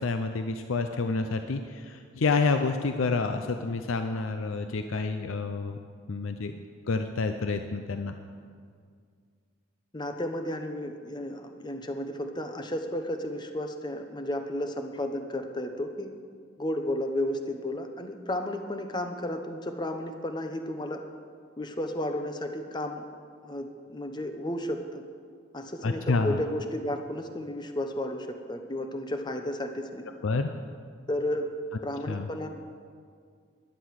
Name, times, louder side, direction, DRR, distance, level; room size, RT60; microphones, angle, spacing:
voice 1, 0.0-5.8 6.1-6.6 6.9-8.1 25.8-26.4 30.2-30.5 32.1-32.3, left 3 dB, 85° left, 7 dB, 0.6 m, -28 dB
voice 2, 9.9-16.1 16.6-21.0 21.6-23.0 23.4-25.0 25.5-30.0 31.1-31.5 31.8-32.5, left 1 dB, 20° left, 6 dB, 0.8 m, -33 dB
11.5 x 10.5 x 6.3 m, 2.1 s
head